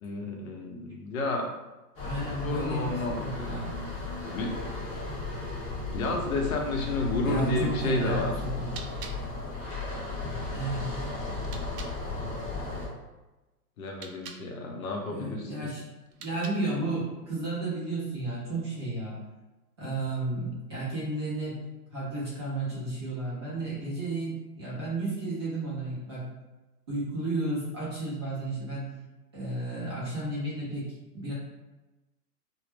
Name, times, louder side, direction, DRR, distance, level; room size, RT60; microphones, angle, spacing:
voice 1, 0.0-1.5 2.4-4.5 5.9-8.3 13.8-15.7, left 2 dB, 60° left, 1 dB, 0.7 m, -31 dB
sound 1, 2.0-12.9, left 3 dB, 20° left, 0.6 m, -35 dB
voice 2, 2.0-3.7 7.2-8.8 10.5-11.0 15.1-15.8 16.2-19.2 19.8-21.6 21.9-26.3 26.9-28.9 29.3-31.3, right 2 dB, 20° right, -9 dB, 0.4 m, -32 dB
sound 2, 8.6-12.0 13.8-14.5 16.0-16.8, right 5 dB, 75° right, 0.5 m, -48 dB
2.1 x 2.0 x 3.1 m, 1.1 s
hypercardioid pair, 135°, 47 cm